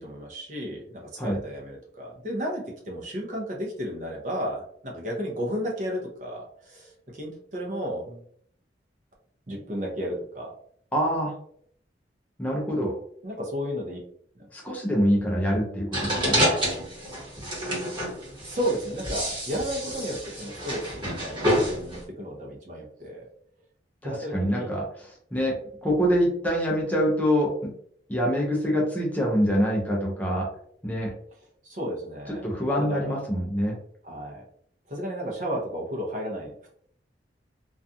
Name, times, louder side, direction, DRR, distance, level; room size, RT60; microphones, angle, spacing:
voice 1, 0.0-8.2 9.5-10.5 13.2-14.0 14.4-14.5 18.4-23.3 24.0-24.7 31.6-32.4 32.9-33.2 34.0-34.4 34.9-36.5, equal, 45° right, -2 dB, 0.6 m, -33 dB
voice 2, 10.9-11.3 12.4-12.9 14.5-16.4 24.0-25.6 25.8-27.7 28.1-30.5 30.8-31.1 32.3-33.8, equal, 10° left, -2 dB, 0.5 m, -25 dB
sound 1, 15.9-22.0, equal, 25° right, 1.0 m, -28 dB
2.4 x 2.3 x 2.6 m, 0.64 s
head